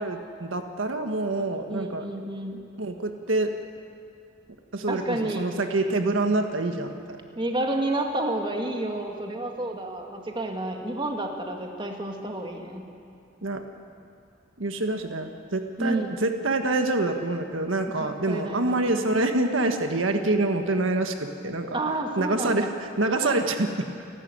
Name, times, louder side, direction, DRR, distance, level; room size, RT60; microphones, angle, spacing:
voice 1, 0.0-2.1 2.8-3.5 4.7-7.2 13.4-13.6 14.6-21.8 22.2-23.8, right 2 dB, 90° right, 5 dB, 1.5 m, -26 dB
voice 2, 1.7-2.6 4.9-5.5 7.4-12.8 15.8-16.1 18.3-18.8 21.7-22.7 23.2-23.4, right 2 dB, 25° right, 2 dB, 2.2 m, -30 dB
30.0 x 12.0 x 9.4 m, 2.4 s
head